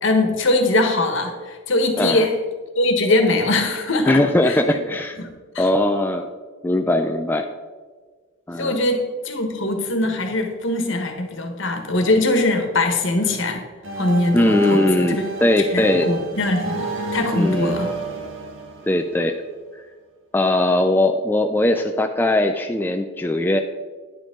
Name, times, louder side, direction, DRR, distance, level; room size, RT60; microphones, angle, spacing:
voice 1, 0.0-2.3 2.8-4.1 4.4-4.6 5.2-5.3 5.5-5.6 8.6-13.6 14.0-15.2 15.7-16.9 17.1-17.9, left 2 dB, 60° left, 5 dB, 1.3 m, -21 dB
voice 2, 4.1-5.2 5.6-6.3 6.6-7.5 8.5-8.8 14.3-16.2 17.3-17.7 18.8-19.4 20.3-23.6, left 1 dB, 10° left, 4 dB, 0.3 m, -20 dB
sound 1, 13.8-19.6, right 2 dB, 65° right, 1.2 m, -30 dB
10.5 x 7.6 x 3.7 m, 1.5 s
head